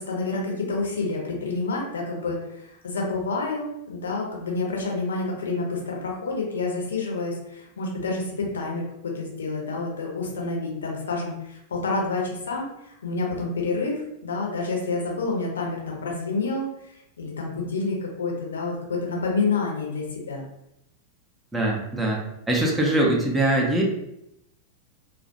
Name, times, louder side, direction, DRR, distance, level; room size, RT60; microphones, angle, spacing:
voice 1, 0.0-16.6 17.2-20.4, left 3 dB, 70° left, -1 dB, 0.6 m, -28 dB
voice 2, 21.5-22.2 22.5-23.8, right 1 dB, 10° right, -2 dB, 0.5 m, -22 dB
2.2 x 2.0 x 2.7 m, 0.81 s
figure-of-eight pair, 90°, 0 cm